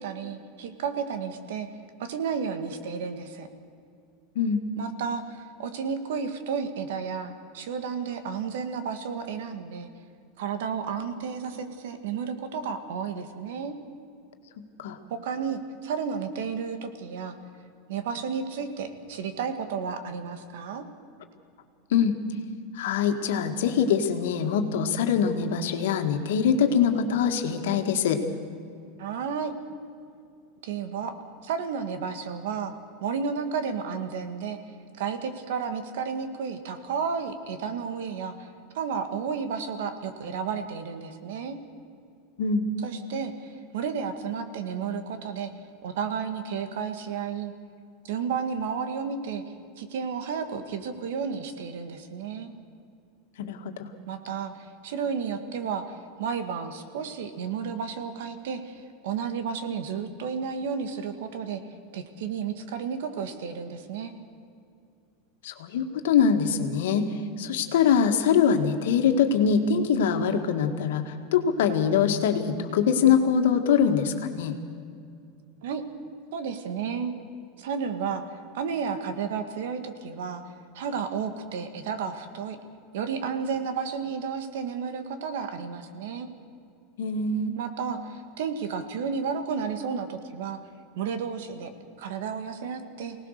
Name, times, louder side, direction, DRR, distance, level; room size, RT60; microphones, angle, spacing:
voice 1, 0.0-1.7 2.0-3.5 4.8-9.9 10.4-13.8 15.1-17.4 17.9-20.8 29.0-29.5 30.6-31.2 31.4-32.7 33.0-34.6 34.9-38.5 38.7-41.6 42.8-45.5 45.8-47.5 48.0-49.4 49.8-52.5 54.1-54.5 54.8-61.6 61.9-64.1 75.6-75.8 76.3-77.1 77.6-78.3 78.5-80.4 80.7-82.6 82.9-86.3 87.6-90.6 91.0-91.7 92.0-93.2, right 6 dB, 75° right, 8 dB, 2.0 m, -32 dB
voice 2, 22.8-28.2 42.4-42.7 53.4-53.9 65.4-67.1 67.4-74.5 87.0-87.5, left 7 dB, 85° left, 5 dB, 1.9 m, -23 dB
24.5 x 18.5 x 6.7 m, 2.4 s
supercardioid pair, 160°, 0 cm